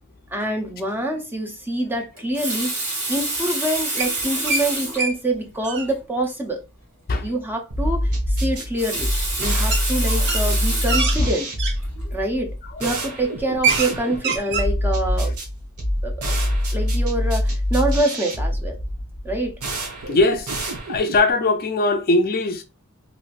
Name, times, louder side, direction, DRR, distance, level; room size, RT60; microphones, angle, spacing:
voice 1, 0.3-2.7 3.1-6.6 7.2-9.1 9.4-11.5 12.1-12.5 12.8-15.3 16.0-16.4 16.7-18.8 19.2-19.6, right 1 dB, 10° right, 0.6 m, -26 dB
Water tap faucet, 2.2-5.1 5.9-6.0 6.2-6.3 8.5-11.1 11.8-12.0, right 2 dB, 70° right, 1.6 m, -27 dB
sound 1, 4.0-4.7 5.0-5.1 5.4-5.9 8.1-8.2 9.7-9.8 10.2-11.8 12.4-12.7 13.0-13.1 13.4-13.9 14.2-14.7, right 4 dB, 50° right, 0.6 m, -24 dB
sound 2, 7.7-21.3, equal, 90° right, 1.0 m, -25 dB
voice 2, 10.1-10.5 11.2-11.3 12.0-12.1 12.6-12.9 20.1-20.5 20.9-22.6, left 2 dB, 45° left, 0.4 m, -21 dB
3.1 x 3.0 x 2.4 m
head